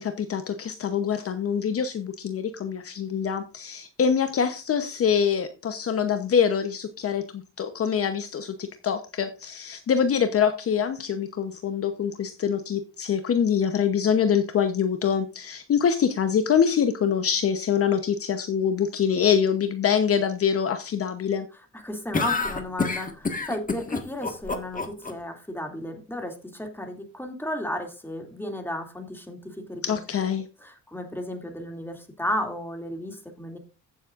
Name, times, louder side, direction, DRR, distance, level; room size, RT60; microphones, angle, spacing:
voice 1, 0.0-21.5 29.8-30.5, left 7 dB, 50° left, 9 dB, 0.9 m, -25 dB
voice 2, 21.7-30.0 30.6-33.6, left 1 dB, 5° left, 4 dB, 2.5 m, -34 dB
sound 1, 22.1-25.1, left 4 dB, 25° left, 1.6 m, -27 dB
15.5 x 7.3 x 2.5 m, 0.31 s
cardioid pair, 90°, 30 cm